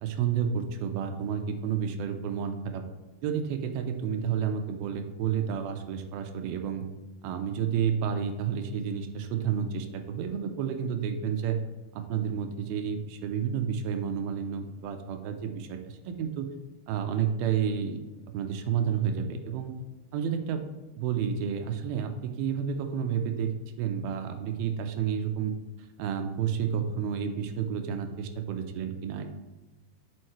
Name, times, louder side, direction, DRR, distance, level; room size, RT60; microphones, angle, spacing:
voice 1, 0.0-2.8 3.2-6.9 7.2-11.6 11.9-16.5 16.9-18.0 18.3-19.7 20.1-20.7 21.0-25.5 26.0-29.3, right 7 dB, 80° right, 5 dB, 2.5 m, -30 dB
9.1 x 6.4 x 3.1 m, 1.1 s
omnidirectional pair, 4.4 m